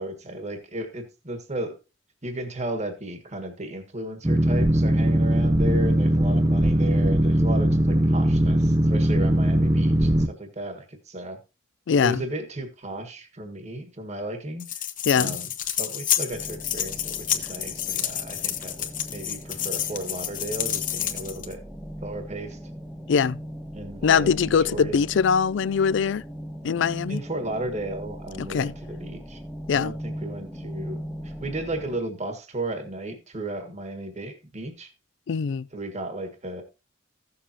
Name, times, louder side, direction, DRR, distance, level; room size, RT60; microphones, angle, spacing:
voice 1, 0.0-1.8 2.2-11.4 12.0-14.8 15.1-15.5 15.8-21.6 22.0-22.6 23.7-25.0 27.1-29.4 29.7-31.0 31.2-34.9 35.7-36.6, right 1 dB, 35° right, 1.5 m, -34 dB
Boat Water vehicle, 4.2-10.3, right 1 dB, 20° right, 0.6 m, -20 dB
voice 2, 11.9-12.2 15.1-15.4 23.1-23.4 24.0-26.2 26.6-27.2 28.4-28.7 29.7-29.9 35.3-35.7, left 6 dB, 65° left, 0.4 m, -22 dB
sound 1, 14.6-21.5, left 10 dB, 45° left, 0.9 m, -29 dB
sound 2, 16.3-32.0, equal, ahead, 1.1 m, -39 dB
15.0 x 7.0 x 2.8 m
head